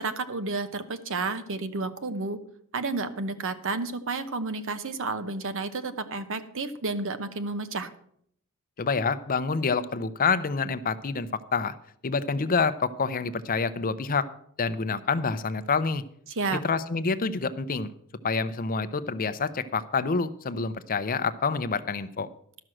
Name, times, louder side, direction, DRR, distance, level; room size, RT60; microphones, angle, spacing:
voice 1, 0.0-2.4 2.7-7.9 16.3-16.6, right 3 dB, 60° right, 11 dB, 0.9 m, -31 dB
voice 2, 8.8-11.7 12.0-14.3 14.6-16.0 16.6-17.9 18.2-22.3, left 4 dB, 40° left, 13 dB, 0.6 m, -27 dB
12.0 x 6.2 x 7.6 m, 0.67 s
head